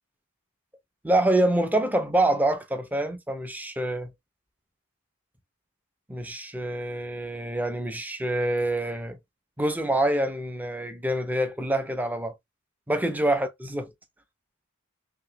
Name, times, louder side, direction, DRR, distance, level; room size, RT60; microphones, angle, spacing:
voice 1, 1.0-4.1 6.1-9.2 9.6-12.3 12.9-13.9, right 1 dB, 10° right, 0.4 m, -26 dB
2.9 x 2.7 x 2.7 m
head